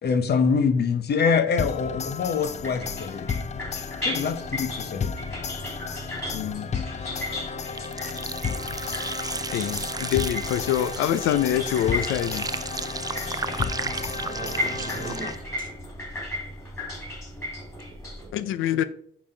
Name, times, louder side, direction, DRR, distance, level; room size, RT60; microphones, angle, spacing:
voice 1, 0.0-3.5 4.0-5.1, left 5 dB, 55° left, 0.9 m, -24 dB
sound 1, 1.6-15.7, left 6 dB, 35° left, 0.5 m, -33 dB
sound 2, 2.4-18.3, left 1 dB, 15° left, 3.3 m, -36 dB
voice 2, 6.3-6.7 9.5-12.5 18.3-18.8, left 11 dB, 85° left, 0.5 m, -25 dB
sound 3, 7.8-15.4, right 4 dB, 20° right, 0.4 m, -34 dB
voice 3, 14.2-15.3 15.6-15.7 18.2-18.9, right 5 dB, 45° right, 1.3 m, -41 dB
8.4 x 4.1 x 5.0 m
cardioid pair, 90°, 20 cm